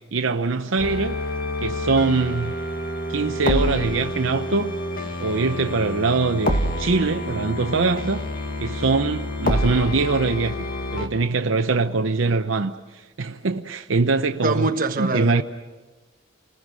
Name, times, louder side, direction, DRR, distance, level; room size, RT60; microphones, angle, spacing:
voice 1, 0.1-1.2 1.6-2.5 3.1-4.7 5.2-8.2 8.6-10.6 10.9-14.7 15.0-15.4, right 3 dB, 70° right, 0.7 m, -23 dB
sound 1, 0.8-11.1, left 1 dB, 45° left, 1.9 m, -27 dB
voice 2, 14.4-15.4, right 2 dB, 40° right, 1.4 m, -23 dB
30.0 x 21.0 x 6.2 m
head